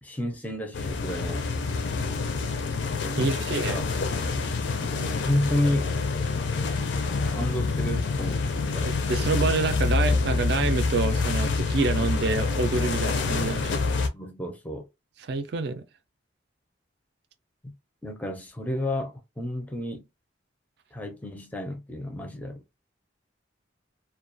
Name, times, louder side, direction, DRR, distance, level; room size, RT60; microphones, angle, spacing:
voice 1, 0.0-1.4 3.2-3.8 4.8-5.9 7.3-9.0 14.1-14.9 17.6-17.7 18.0-20.1 20.9-22.6, left 1 dB, 10° left, 0.4 m, -31 dB
sound 1, 0.7-14.1, left 4 dB, 65° left, 0.4 m, -27 dB
voice 2, 3.2-3.8 8.8-13.8 15.2-15.8, right 3 dB, 55° right, 0.4 m, -27 dB
2.3 x 2.2 x 2.5 m
head